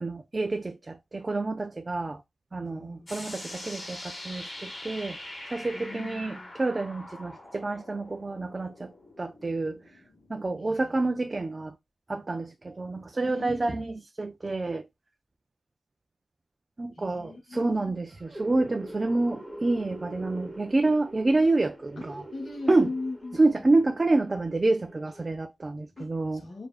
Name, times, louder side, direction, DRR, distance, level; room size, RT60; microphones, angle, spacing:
voice 1, 0.0-2.2 2.5-5.2 5.5-8.9 9.2-9.8 10.3-11.7 12.1-14.8 16.8-22.2 22.7-22.9 23.4-26.4, right 2 dB, 25° right, 0.3 m, -28 dB
voice 2, 2.6-3.3 5.7-6.5 10.6-10.8 13.2-13.8 17.0-18.0 22.0-22.1 22.3-23.6 26.0-26.7, left 3 dB, 40° left, 1.4 m, -39 dB
sound 1, 3.1-10.6, left 1 dB, 20° left, 1.9 m, -43 dB
sound 2, 18.1-25.3, right 1 dB, 5° right, 1.2 m, -44 dB
6.4 x 2.5 x 2.3 m
wide cardioid pair, 155°, 0 cm